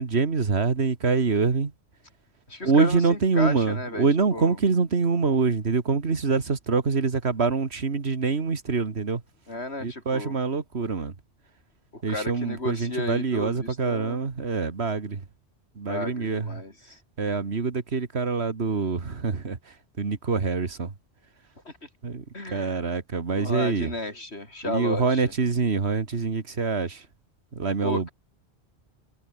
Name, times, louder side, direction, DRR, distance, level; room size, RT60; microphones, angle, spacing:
voice 1, 0.0-1.7 2.6-9.2 9.8-11.1 12.0-15.2 15.8-16.6 17.2-19.6 20.0-20.9 22.0-22.2 22.5-23.9 24.6-27.0 27.5-28.1, right 4 dB, 75° right, 2.2 m, -25 dB
voice 2, 2.5-4.1 4.3-4.6 9.5-10.4 11.9-14.2 15.9-17.0 21.7-21.9 22.3-22.8 23.3-25.3 27.8-28.1, left 2 dB, 75° left, 5.4 m, -33 dB
omnidirectional pair, 1.1 m